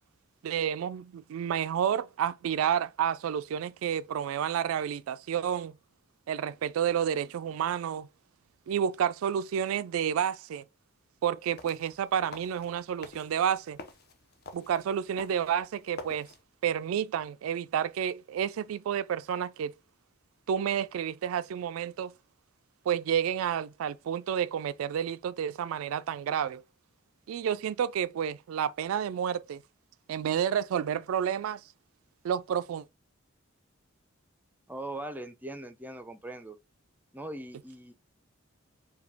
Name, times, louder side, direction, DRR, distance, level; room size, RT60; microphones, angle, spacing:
voice 1, 0.4-5.7 6.3-8.1 8.7-10.6 11.2-13.8 14.5-16.3 16.6-19.7 20.5-22.1 22.9-26.6 27.3-29.6 30.1-31.6 32.2-32.8, right 9 dB, 80° right, 0.3 m, -30 dB
sound 1, 11.4-16.4, left 3 dB, 50° left, 0.6 m, -49 dB
voice 2, 34.7-36.6 37.1-37.9, right 1 dB, 10° right, 0.4 m, -40 dB
4.9 x 2.3 x 3.4 m
head